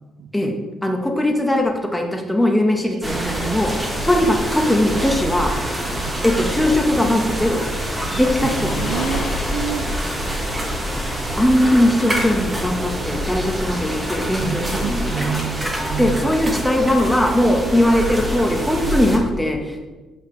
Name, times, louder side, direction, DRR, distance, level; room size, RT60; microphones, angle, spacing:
voice 1, 0.8-3.7 4.0-5.5 6.2-7.6 8.1-9.2 11.4-15.4 16.0-19.9, left 1 dB, 5° left, 2 dB, 1.2 m, -20 dB
voice 2, 2.8-3.6 6.1-6.2 8.4-9.9 14.4-16.3, right 8 dB, 75° right, 10 dB, 0.4 m, -29 dB
sound 1, 3.0-19.2, equal, 20° right, 1.7 m, -26 dB
Waves surf, 4.0-10.5, left 4 dB, 70° left, 0.9 m, -36 dB
8.1 x 5.8 x 3.3 m, 1.2 s
cardioid pair, 90°, 0 cm